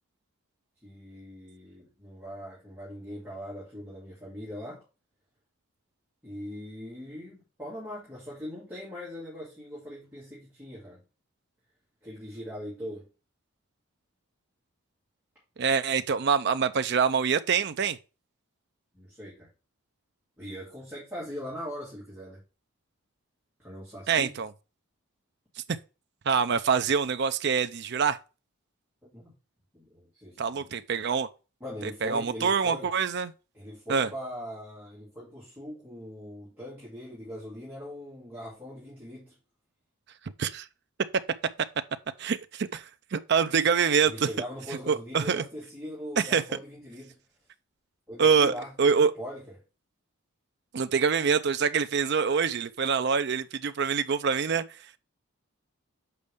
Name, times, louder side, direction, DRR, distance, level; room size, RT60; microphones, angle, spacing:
voice 1, 0.8-4.8 6.2-11.0 12.0-13.1 18.9-19.5 20.4-22.4 23.6-24.4 29.0-29.3 29.7-30.7 31.6-32.9 33.5-39.3 44.0-47.2 48.1-49.4, equal, 10° right, 2.5 m, -41 dB
voice 2, 15.6-18.0 24.1-24.5 26.3-28.2 30.4-31.3 31.8-33.3 33.9-34.1 40.4-40.7 42.2-44.3 44.9-45.4 46.2-46.4 48.2-49.1 50.7-54.6, right 6 dB, 50° right, 0.4 m, -25 dB
6.8 x 5.3 x 3.5 m
head